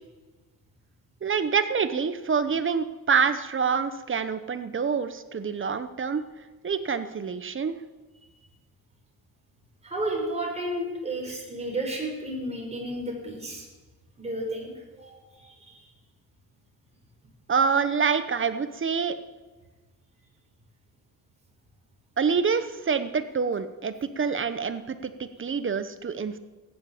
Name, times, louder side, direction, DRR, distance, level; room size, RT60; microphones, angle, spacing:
voice 1, 1.2-6.2 6.6-7.8 17.5-19.2 22.2-26.4, right 6 dB, 35° right, 11 dB, 1.0 m, -26 dB
voice 2, 9.8-13.7 14.2-15.8, right 1 dB, 15° right, -1 dB, 5.3 m, -32 dB
15.5 x 10.5 x 7.2 m, 1.2 s
cardioid pair, 115°, 37 cm